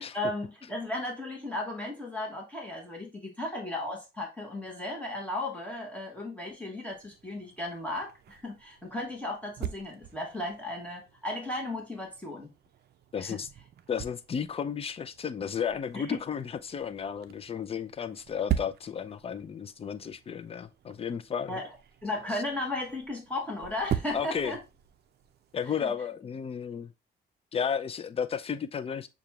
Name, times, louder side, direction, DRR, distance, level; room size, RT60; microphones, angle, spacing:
voice 1, 0.1-12.5 13.2-13.4 15.9-16.2 21.5-21.7 22.0-24.6 25.8-25.9, left 2 dB, 5° left, 1.2 m, -35 dB
sound 1, 6.9-25.8, right 11 dB, 55° right, 0.5 m, -42 dB
voice 2, 13.1-13.5 13.9-21.6 22.3-22.4 24.1-24.5 25.5-26.9 27.5-29.1, left 7 dB, 30° left, 0.4 m, -33 dB
6.6 x 2.4 x 2.9 m
cardioid pair, 90°, 20 cm